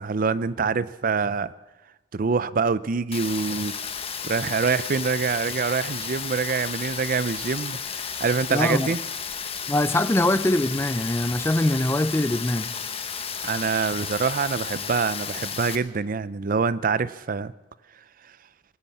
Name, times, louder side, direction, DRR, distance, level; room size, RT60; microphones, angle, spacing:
voice 1, 0.0-1.5 2.1-3.7 4.2-9.0 13.4-17.5, right 5 dB, 50° right, 0.5 m, -25 dB
Rain, 3.1-15.8, left 6 dB, 35° left, 1.1 m, -33 dB
voice 2, 8.5-8.9 9.7-12.7, left 1 dB, 15° left, 0.4 m, -23 dB
20.5 x 9.7 x 7.3 m
head